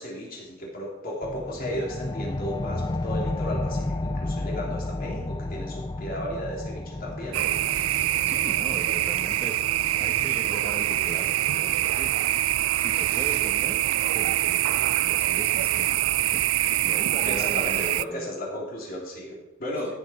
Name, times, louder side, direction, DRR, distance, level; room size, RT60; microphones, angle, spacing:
voice 1, 0.0-7.6 17.2-20.0, equal, 45° left, -2 dB, 3.4 m, -34 dB
sound 1, 1.2-12.3, left 2 dB, 20° left, 0.4 m, -33 dB
sound 2, 7.3-18.0, right 14 dB, 85° right, 0.3 m, -24 dB
voice 2, 8.2-9.5 10.0-12.2 12.7-13.8 14.1-18.3 19.9-20.0, right 1 dB, 10° right, 3 dB, 1.4 m, -40 dB
14.5 x 8.0 x 4.6 m, 1.0 s
head